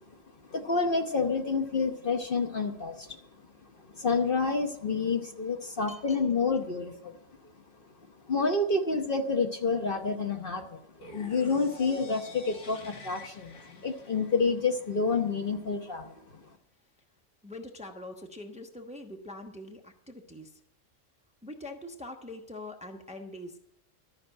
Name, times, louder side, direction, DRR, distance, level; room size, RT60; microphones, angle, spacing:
voice 1, 0.5-3.1 3.9-7.2 8.3-10.8 11.1-16.1, left 4 dB, 45° left, 4 dB, 1.1 m, -28 dB
voice 2, 5.9-6.2 17.4-20.6 21.4-23.6, left 1 dB, 5° right, 4 dB, 1.0 m, -43 dB
sound 1, 11.0-15.0, left 3 dB, 70° left, 1.7 m, -48 dB
13.0 x 6.0 x 8.8 m, 0.74 s
omnidirectional pair, 1.3 m